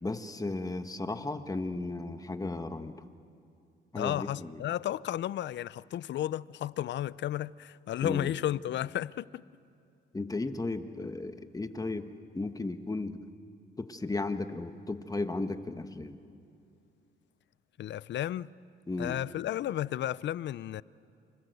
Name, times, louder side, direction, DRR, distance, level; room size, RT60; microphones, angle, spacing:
voice 1, 0.0-2.9 3.9-4.5 8.0-8.3 10.1-12.1 12.3-13.2 13.8-16.2 18.9-19.2, left 2 dB, 20° left, 1.5 m, -35 dB
voice 2, 3.9-9.4 17.8-18.5 19.0-20.8, left 12 dB, 65° left, 0.6 m, -33 dB
28.0 x 25.5 x 8.1 m
cardioid pair, 90°, 20 cm